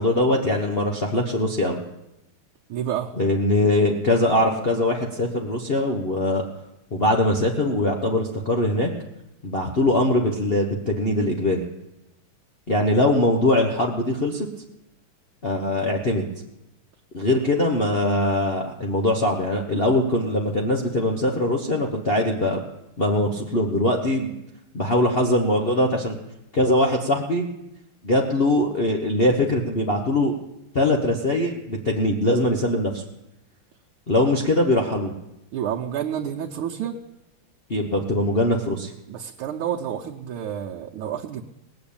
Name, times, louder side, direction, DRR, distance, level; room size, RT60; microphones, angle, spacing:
voice 1, 0.0-1.8 3.2-6.4 6.9-8.9 9.4-11.6 12.7-14.5 15.4-16.3 17.1-22.6 23.0-24.3 24.7-26.2 26.5-27.5 28.0-30.3 30.7-33.0 34.1-35.1 37.7-38.9, left 1 dB, 35° left, -1 dB, 1.1 m, -22 dB
voice 2, 2.7-3.1 35.5-37.0 39.1-41.4, right 9 dB, 85° right, 0 dB, 1.7 m, -29 dB
18.5 x 7.1 x 8.7 m, 0.89 s
omnidirectional pair, 2.3 m